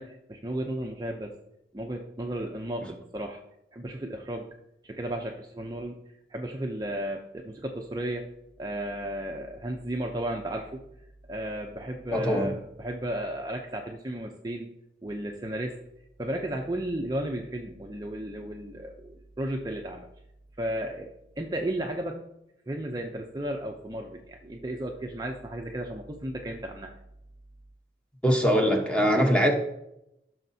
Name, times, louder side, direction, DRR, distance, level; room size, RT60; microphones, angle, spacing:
voice 1, 0.0-1.3 1.7-3.4 3.7-4.5 4.8-6.0 6.3-8.3 8.6-10.8 11.3-14.7 15.0-15.8 16.2-20.1 20.6-21.1 21.4-22.2 22.7-26.9, right 1 dB, 20° right, 2 dB, 0.5 m, -34 dB
voice 2, 12.1-12.5 28.2-29.5, equal, 5° left, 2 dB, 0.9 m, -22 dB
13.5 x 6.3 x 2.7 m, 0.85 s
head